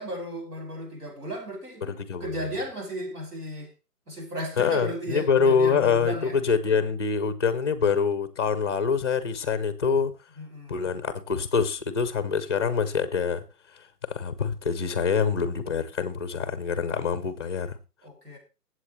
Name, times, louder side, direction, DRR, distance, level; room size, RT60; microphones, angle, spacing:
voice 1, 0.0-3.7 4.1-6.4 10.4-10.8 18.0-18.4, equal, 65° right, 6.2 m, -35 dB
voice 2, 1.8-2.5 4.6-10.1 10.7-13.4 14.1-17.8, left 5 dB, 15° left, 0.7 m, -25 dB
21.5 x 8.0 x 3.2 m
figure-of-eight pair, 145°, 49 cm